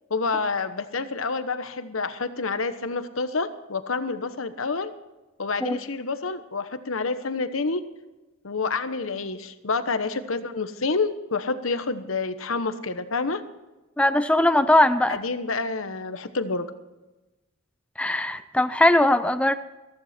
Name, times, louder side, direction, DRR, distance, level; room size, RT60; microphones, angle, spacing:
voice 1, 0.1-4.9 5.4-7.8 8.4-13.4 15.1-16.7, left 4 dB, 75° left, 10 dB, 1.1 m, -28 dB
voice 2, 14.0-15.2 18.0-19.5, left 1 dB, 5° left, 11 dB, 0.5 m, -20 dB
15.0 x 15.0 x 4.4 m, 1.1 s
head